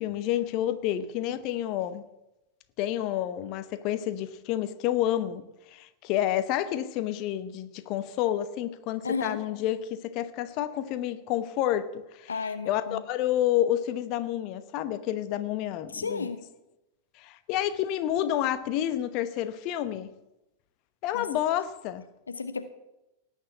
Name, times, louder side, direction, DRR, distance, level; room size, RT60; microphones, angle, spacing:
voice 1, 0.0-2.0 2.8-5.4 5.7-12.3 12.7-16.3 17.2-20.1 21.0-22.0, left 12 dB, 40° left, 1.0 m, -29 dB
voice 2, 9.0-9.4 12.3-13.0 15.9-16.4 21.1-21.3 22.3-22.7, left 4 dB, 75° left, 0.9 m, -33 dB
18.0 x 6.5 x 8.6 m
figure-of-eight pair, 90°, 0 cm